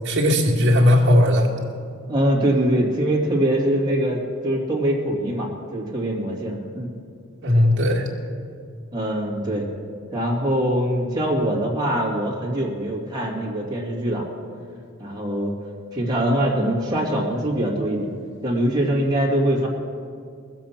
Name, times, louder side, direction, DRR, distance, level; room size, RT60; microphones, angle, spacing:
voice 1, 0.0-1.5 7.4-8.1, left 1 dB, 55° right, -1 dB, 2.0 m, -17 dB
voice 2, 2.1-6.9 8.9-9.7 10.1-14.3 15.0-15.5 15.9-18.1 18.4-19.7, right 1 dB, 20° right, -4 dB, 2.3 m, -23 dB
20.5 x 7.6 x 5.9 m, 2.3 s
head